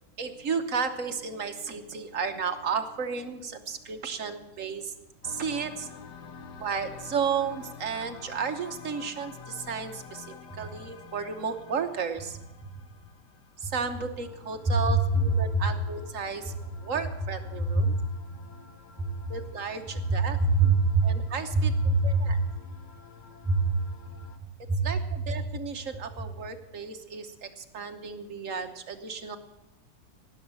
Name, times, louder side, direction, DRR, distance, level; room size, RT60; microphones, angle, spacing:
voice 1, 0.2-6.0 6.6-12.4 13.6-16.5 16.8-18.0 19.3-20.4 21.0-22.4 24.8-29.4, right 6 dB, 50° right, 6 dB, 1.3 m, -33 dB
sound 1, 5.2-24.4, left 5 dB, 75° left, 1.8 m, -49 dB
voice 2, 14.7-15.7 17.6-17.9 19.0-19.1 20.1-21.1 21.5-22.4 23.4-23.8 24.4-25.0 25.3-25.4, right 3 dB, 15° right, -2 dB, 4.0 m, -24 dB
17.5 x 6.7 x 8.8 m, 0.98 s
omnidirectional pair, 1.9 m